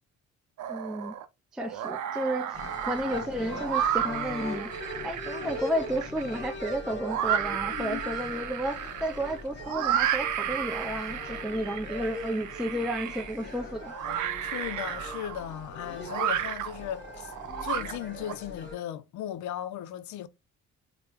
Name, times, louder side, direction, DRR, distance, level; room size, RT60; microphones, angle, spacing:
sound 1, 0.6-1.2 1.6-18.3, right 10 dB, 75° right, 0.5 m, -33 dB
voice 1, 0.7-1.2 1.5-13.9, right 1 dB, ahead, 0.3 m, -32 dB
sound 2, 2.5-18.7, left 2 dB, 40° left, 1.3 m, -41 dB
voice 2, 7.6-8.2 14.4-17.3 17.6-20.3, left 11 dB, 75° left, 0.4 m, -37 dB
3.5 x 2.1 x 2.8 m
cardioid pair, 90°, 30 cm